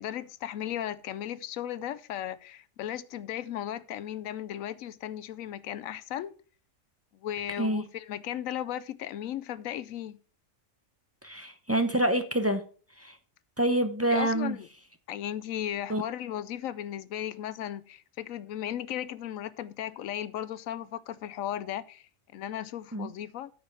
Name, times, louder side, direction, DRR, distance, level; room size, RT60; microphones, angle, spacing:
voice 1, 0.0-6.3 7.2-10.2 14.1-14.7 15.1-23.5, left 11 dB, 80° left, 1.0 m, -36 dB
voice 2, 11.2-12.6 13.0-13.2 13.6-14.6 15.9-16.0 22.9-23.1, right 1 dB, 15° right, 0.6 m, -27 dB
9.0 x 5.2 x 5.6 m
omnidirectional pair, 1.4 m